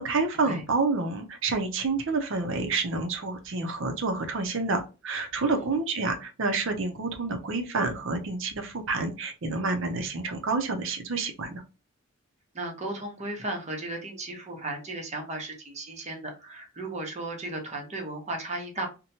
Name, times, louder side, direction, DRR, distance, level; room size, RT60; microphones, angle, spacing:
voice 1, 0.0-11.6, right 3 dB, 65° right, 5 dB, 0.6 m, -28 dB
voice 2, 12.5-18.9, right 2 dB, 35° right, 2 dB, 0.8 m, -35 dB
2.9 x 2.2 x 2.7 m, 0.31 s
head